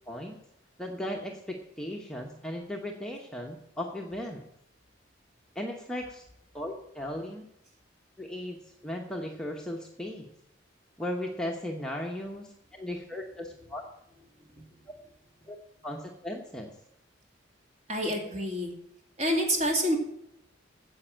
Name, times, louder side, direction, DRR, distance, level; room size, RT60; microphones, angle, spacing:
voice 1, 0.1-0.4 0.8-4.4 5.5-6.2 6.5-7.4 8.2-10.3 11.0-13.8 15.5-15.6 15.8-16.7, left 1 dB, 5° left, 0 dB, 1.0 m, -36 dB
voice 2, 17.9-18.7 19.2-20.0, equal, 35° right, 2 dB, 2.4 m, -28 dB
9.7 x 7.8 x 7.4 m, 0.78 s
head